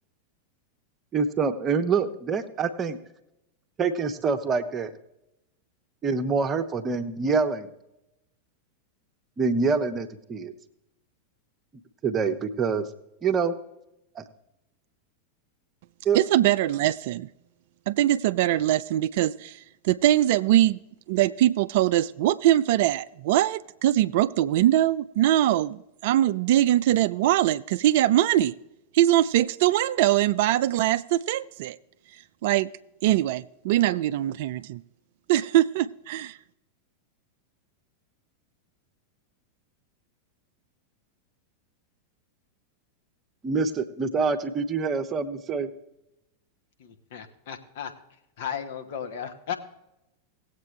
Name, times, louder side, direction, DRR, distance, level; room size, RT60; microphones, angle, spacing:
voice 1, 1.1-3.0 3.8-4.9 6.0-7.7 9.4-10.5 12.0-12.8 13.2-13.5 14.2-14.3 16.0-16.2 43.4-45.7, right 5 dB, 25° right, 8 dB, 0.9 m, -26 dB
voice 2, 16.1-17.3 17.9-20.8 21.1-28.5 28.9-31.8 32.4-32.7 33.0-34.8 35.3-36.4, right 13 dB, 50° right, 15 dB, 0.3 m, -22 dB
voice 3, 46.8-47.9 48.4-49.5, left 8 dB, 55° left, 6 dB, 1.2 m, -35 dB
18.5 x 8.1 x 3.3 m, 0.87 s
figure-of-eight pair, 90°, 0 cm